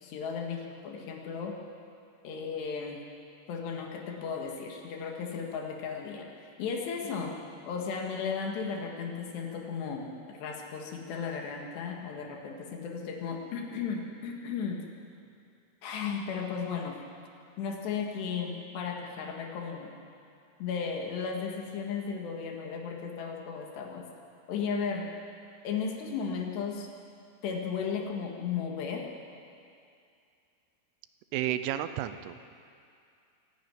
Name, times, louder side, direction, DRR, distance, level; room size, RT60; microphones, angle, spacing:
voice 1, 0.0-1.6 2.2-3.0 3.5-7.4 7.7-14.9 15.8-17.0 17.6-19.9 20.6-24.1 24.5-25.1 25.6-26.9 27.4-29.1, left 6 dB, 65° left, 1 dB, 3.6 m, -35 dB
voice 2, 31.3-32.5, right 12 dB, 85° right, 11 dB, 3.3 m, -32 dB
24.5 x 11.5 x 9.3 m, 2.4 s
omnidirectional pair, 5.7 m